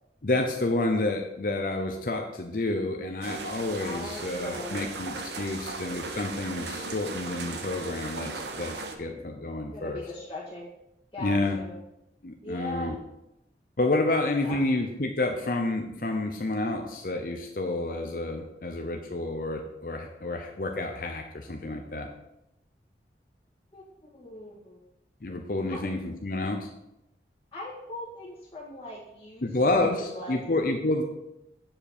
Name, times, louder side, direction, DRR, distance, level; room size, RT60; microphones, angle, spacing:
voice 1, 0.2-10.0 11.2-11.6 12.2-13.0 13.8-22.1 25.2-26.7 29.4-31.0, left 2 dB, 50° left, 3 dB, 0.7 m, -29 dB
sound 1, 3.2-8.9, right 3 dB, 75° right, 0.9 m, -37 dB
voice 2, 3.8-4.9 9.7-10.7 11.1-11.8 12.4-13.0 14.4-14.6 23.7-24.8 25.7-25.9 27.5-30.4, left 1 dB, 25° left, -9 dB, 1.9 m, -40 dB
7.7 x 6.9 x 4.3 m, 0.88 s
head